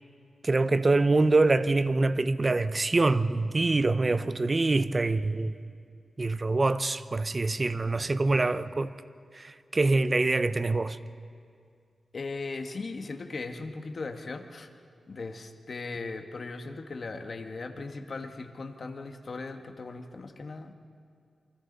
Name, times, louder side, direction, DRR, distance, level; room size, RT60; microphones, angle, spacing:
voice 1, 0.4-5.5 6.2-8.9 9.3-11.0, right 3 dB, 30° right, 0.7 m, -25 dB
voice 2, 12.1-14.7 15.1-20.7, left 3 dB, 50° left, 1.5 m, -38 dB
28.0 x 25.0 x 4.1 m
wide cardioid pair, 100°, 0 cm